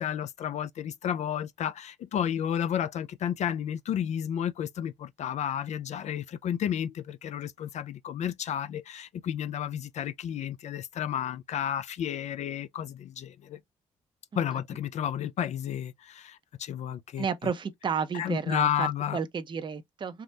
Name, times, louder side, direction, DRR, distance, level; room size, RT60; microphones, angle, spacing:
voice 1, 0.0-13.6 14.3-17.3 18.1-19.2, left 9 dB, 55° left, 0.4 m, -32 dB
voice 2, 17.2-18.9 19.1-20.2, right 6 dB, 35° right, 0.6 m, -32 dB
3.5 x 2.0 x 2.7 m
hypercardioid pair, 50°, 14 cm